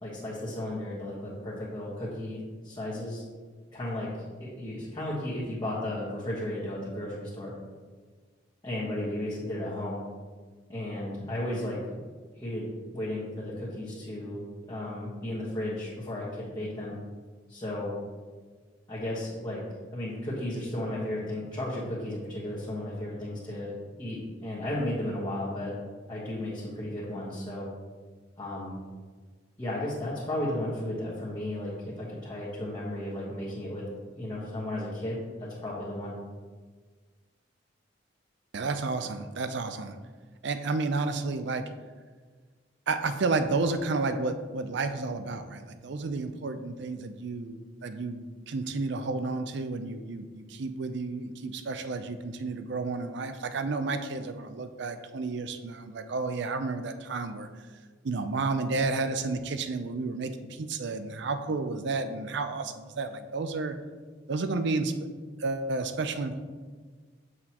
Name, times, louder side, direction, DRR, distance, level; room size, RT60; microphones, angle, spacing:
voice 1, 0.0-3.2 3.7-4.1 4.4-7.5 8.6-10.0 10.7-12.0 12.3-12.7 12.9-14.4 14.7-17.0 17.5-17.9 18.9-19.6 19.9-23.7 24.0-25.7 26.1-27.7 28.4-28.8 29.6-33.8 34.2-35.2 35.6-36.1, left 1 dB, 25° left, -8 dB, 1.4 m, -34 dB
voice 2, 38.5-40.0 40.4-41.7 42.9-57.5 58.0-63.8 64.3-64.9 65.4-66.4, right 3 dB, 65° right, 9 dB, 0.5 m, -31 dB
7.7 x 6.1 x 3.0 m, 1.5 s
head